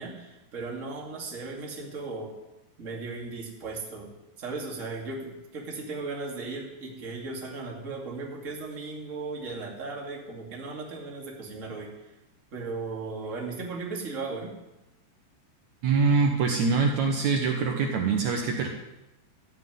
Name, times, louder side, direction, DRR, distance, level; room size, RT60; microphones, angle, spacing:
voice 1, 0.0-2.3 2.8-4.1 4.4-11.9 12.5-14.5, right 3 dB, 25° right, -1 dB, 1.7 m, -36 dB
voice 2, 15.8-18.7, right 4 dB, 85° right, 2 dB, 1.6 m, -24 dB
14.0 x 7.9 x 9.4 m, 0.98 s
omnidirectional pair, 5.2 m